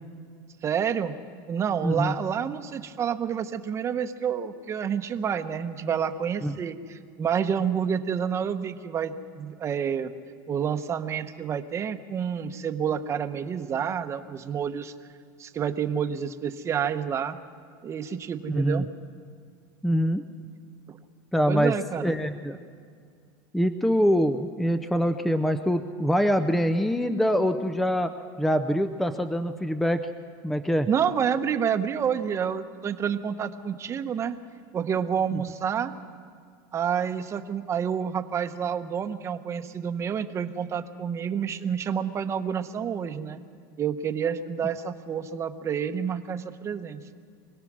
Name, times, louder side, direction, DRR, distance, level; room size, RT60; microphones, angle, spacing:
voice 1, 0.6-1.1 1.5-10.1 10.5-14.9 15.4-17.4 17.8-18.9 20.9-21.0 21.5-22.1 30.9-34.3 34.7-35.9 36.7-43.4 43.8-47.0, right 7 dB, 25° right, 9 dB, 0.9 m, -29 dB
voice 2, 1.8-2.2 6.4-6.5 18.5-18.9 19.8-20.2 21.3-22.6 23.5-28.1 28.4-30.1 30.4-30.9 35.3-35.4, equal, ahead, 10 dB, 0.5 m, -24 dB
25.0 x 18.0 x 6.2 m, 2.2 s
supercardioid pair, 145°, 11 cm